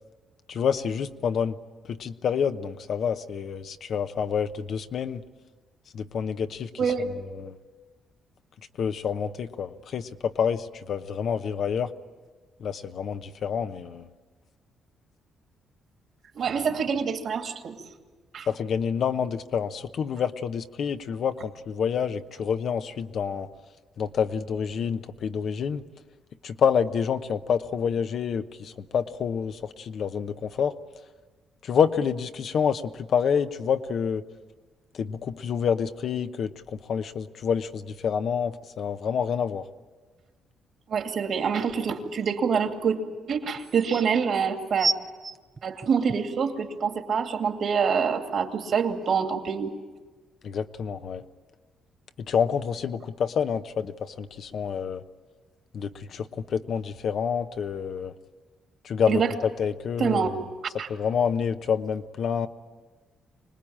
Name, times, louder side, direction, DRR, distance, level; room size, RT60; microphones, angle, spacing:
voice 1, 0.5-1.6 1.9-5.2 5.9-6.7 7.3-7.5 8.8-11.9 12.6-14.1 18.5-23.5 24.0-25.8 26.4-30.7 31.6-34.2 35.0-39.6 50.4-51.2 52.2-55.0 55.7-58.1 58.8-60.4 60.9-62.5, left 7 dB, 60° left, 9 dB, 0.9 m, -28 dB
voice 2, 6.8-7.1 16.3-17.8 18.3-18.5 40.9-43.0 43.3-44.9 45.6-49.7 59.1-59.3 60.0-60.3 60.8-60.9, right 6 dB, 60° right, 5 dB, 2.5 m, -26 dB
sound 1, 43.1-43.2 43.5-44.1 44.8-46.4 47.1-47.2, right 3 dB, 30° right, 0.7 m, -29 dB
25.5 x 19.5 x 8.8 m, 1.3 s
cardioid pair, 90°, 0 cm